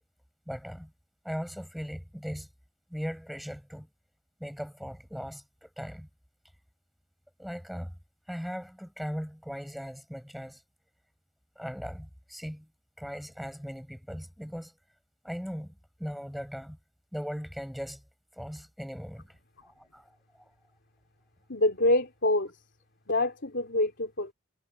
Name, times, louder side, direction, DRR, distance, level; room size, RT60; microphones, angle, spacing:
voice 1, 0.5-0.9 1.2-2.5 2.9-3.9 4.4-6.1 7.4-7.9 8.3-10.6 11.6-12.7 13.0-14.7 15.2-16.8 17.1-18.0 18.4-19.4 19.6-20.1 20.4-20.5, equal, ahead, 7.9 m, -38 dB
voice 2, 21.5-22.5 23.1-24.3, left 1 dB, 50° left, 3.3 m, -26 dB
head